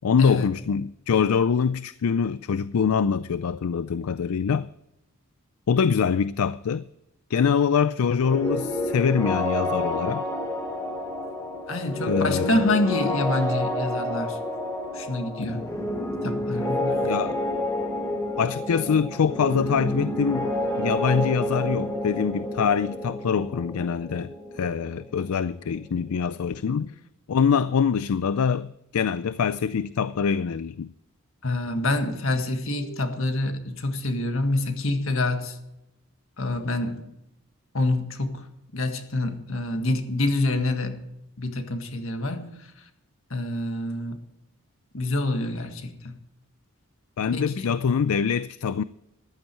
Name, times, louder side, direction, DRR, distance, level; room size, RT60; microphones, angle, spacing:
voice 1, 0.0-4.7 5.7-6.8 7.3-10.2 12.0-12.6 17.0-17.4 18.4-20.5 20.8-26.9 27.3-30.9 47.2-48.8, left 6 dB, 80° left, 0.4 m, -24 dB
sound 1, 8.2-25.9, left 1 dB, 15° left, 2.8 m, -29 dB
voice 2, 11.7-14.4 14.9-15.7 16.2-17.1 31.4-35.6 36.4-37.1 37.7-38.5 38.7-41.0 41.4-42.7 43.3-44.2 44.9-46.2 47.3-47.7, left 2 dB, 65° left, 1.8 m, -27 dB
14.5 x 12.0 x 4.6 m
head